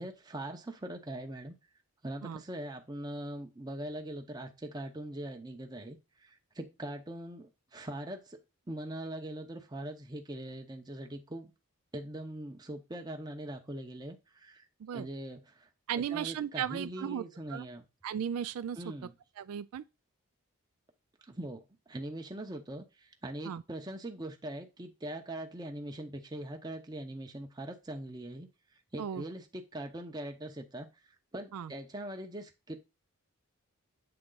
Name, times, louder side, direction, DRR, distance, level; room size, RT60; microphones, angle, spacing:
voice 1, 0.0-1.6 2.0-8.4 8.7-11.5 11.9-14.7 14.9-15.7 15.9-17.8 18.8-19.1 21.3-28.5 28.9-30.9 31.3-32.8, right 1 dB, 20° right, 0.7 m, -42 dB
voice 2, 15.9-17.2 17.5-17.7 18.0-18.9 19.4-19.8 23.5-23.6 29.0-29.2 31.5-31.7, right 9 dB, 75° right, 0.3 m, -36 dB
7.7 x 3.6 x 3.9 m
head